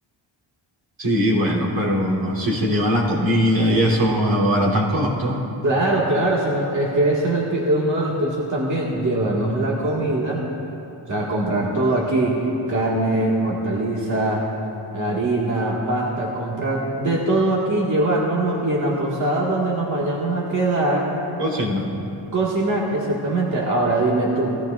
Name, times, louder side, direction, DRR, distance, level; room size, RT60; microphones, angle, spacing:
voice 1, 1.0-5.4 21.4-21.9, equal, 70° right, -6 dB, 3.7 m, -20 dB
voice 2, 5.6-10.4 11.1-12.4 12.7-14.5 14.9-21.1 22.3-24.6, right 2 dB, 40° right, -5 dB, 2.1 m, -22 dB
21.5 x 14.0 x 2.6 m, 2.9 s
cardioid pair, 85°, 46 cm